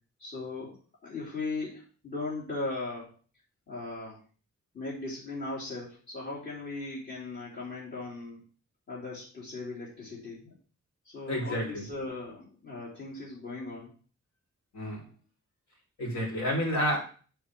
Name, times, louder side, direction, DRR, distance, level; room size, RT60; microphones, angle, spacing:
voice 1, 0.2-0.8 1.0-3.1 3.7-4.2 4.7-8.4 8.9-10.5 11.0-13.9, left 3 dB, 35° left, -8 dB, 3.1 m, -38 dB
voice 2, 11.3-11.8 14.7-15.0 16.0-17.0, equal, 65° left, -2 dB, 3.4 m, -29 dB
8.5 x 4.6 x 5.9 m, 0.39 s
wide cardioid pair, 140°, 30 cm